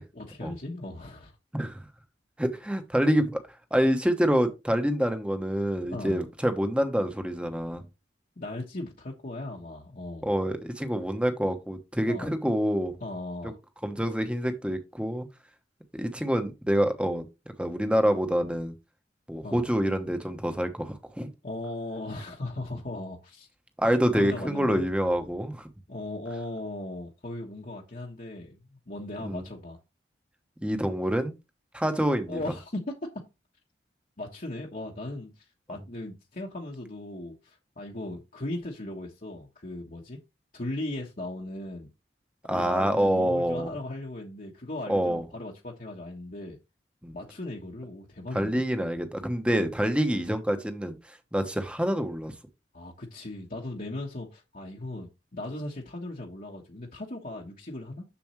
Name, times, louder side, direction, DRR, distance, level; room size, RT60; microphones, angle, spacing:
voice 1, 0.1-1.3 5.9-6.2 8.4-10.3 12.0-12.3 13.0-13.6 19.4-19.6 21.4-23.5 23.8-24.8 25.9-29.8 32.3-32.9 34.2-40.2 40.5-41.9 42.4-46.6 47.1-48.6 52.7-58.0, left 2 dB, 45° left, 1.2 m, -38 dB
voice 2, 2.4-3.4 3.7-7.8 10.2-13.0 13.8-15.3 15.9-17.2 17.6-18.7 19.3-21.3 23.8-25.7 29.2-29.4 30.6-31.3 31.7-32.4 35.7-35.8 42.5-43.7 44.9-45.2 47.0-47.1 48.3-52.3, equal, 5° right, 1.0 m, -26 dB
7.1 x 6.9 x 3.2 m
head